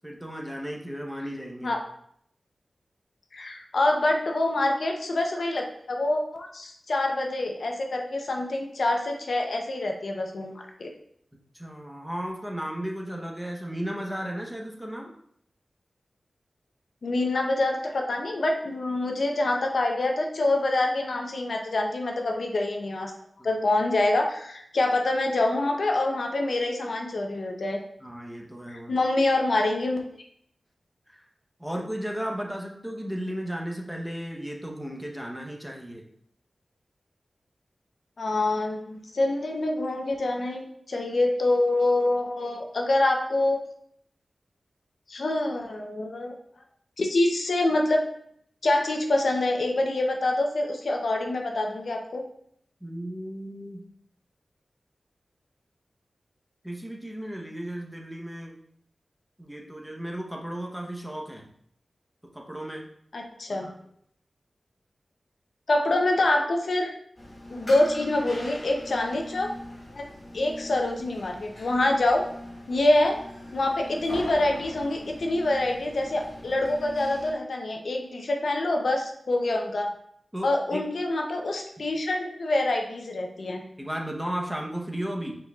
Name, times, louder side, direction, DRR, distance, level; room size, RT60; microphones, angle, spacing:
voice 1, 0.0-1.7 11.6-15.1 28.0-28.9 31.6-36.0 52.8-53.8 56.6-58.5 59.4-61.4 62.3-62.8 63.5-63.7 80.3-80.8 83.8-85.3, equal, 5° right, 0 dB, 0.9 m, -34 dB
voice 2, 3.3-10.9 17.0-23.1 23.4-27.8 28.7-30.0 38.2-40.6 40.9-43.6 45.1-46.3 47.0-48.0 48.6-52.2 63.1-63.7 65.7-66.9 67.5-69.5 69.9-70.0 70.3-72.2 72.7-73.2 73.5-79.9 80.4-83.6, left 2 dB, 75° left, 2 dB, 0.7 m, -26 dB
sound 1, 67.2-77.3, left 1 dB, 55° left, 1.5 m, -41 dB
5.4 x 4.0 x 2.4 m, 0.68 s
wide cardioid pair, 60°, 0 cm